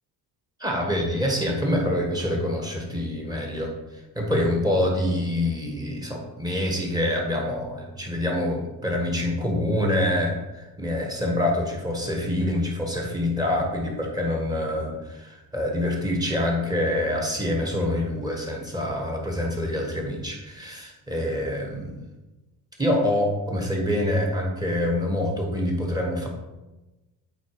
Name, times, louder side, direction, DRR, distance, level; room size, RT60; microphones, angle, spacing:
voice 1, 0.6-3.7 4.1-22.0 22.8-26.3, left 1 dB, 10° right, 0 dB, 1.5 m, -26 dB
8.3 x 4.2 x 4.8 m, 1.1 s
cardioid pair, 150°, 39 cm